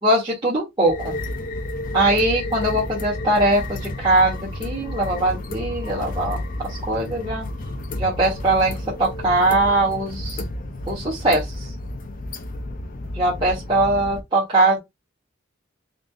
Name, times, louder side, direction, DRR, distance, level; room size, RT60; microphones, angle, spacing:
voice 1, 0.0-1.2 1.9-6.4 6.6-7.4 8.0-10.4 10.9-11.7 13.1-14.8, right 2 dB, 25° right, 1.3 m, -21 dB
sound 1, 0.8-14.2, left 1 dB, 45° left, 0.6 m, -31 dB
3.8 x 2.6 x 3.2 m
head